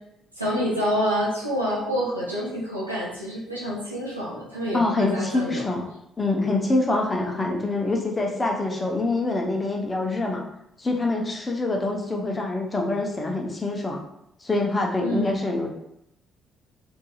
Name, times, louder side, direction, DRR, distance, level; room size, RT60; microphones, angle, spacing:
voice 1, 0.4-5.6 15.0-15.3, equal, 90° right, -7 dB, 0.7 m, -27 dB
voice 2, 4.7-5.9 6.2-10.4 10.8-14.0 14.4-15.7, left 2 dB, 25° left, 1 dB, 0.7 m, -25 dB
3.9 x 2.6 x 2.3 m, 0.79 s
figure-of-eight pair, 45°, 0 cm